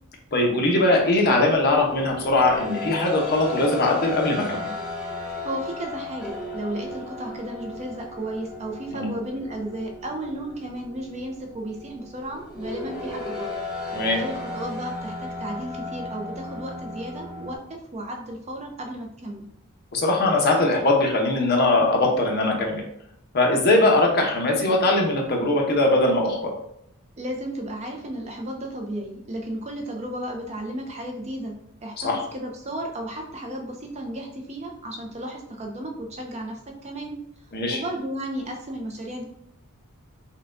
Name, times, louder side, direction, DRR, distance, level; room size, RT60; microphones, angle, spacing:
voice 1, 0.3-4.7 8.9-9.1 13.9-14.2 19.9-22.8 23.3-26.5 32.0-32.2 37.5-37.8, left 2 dB, 45° left, 0 dB, 0.8 m, -21 dB
sound 1, 1.5-17.6, left 2 dB, 5° right, 0.8 m, -35 dB
voice 2, 5.4-13.6 14.1-19.5 27.2-31.6 31.8-37.2 37.7-39.3, right 1 dB, 30° right, 2 dB, 0.5 m, -34 dB
5.6 x 2.2 x 2.6 m, 0.72 s
head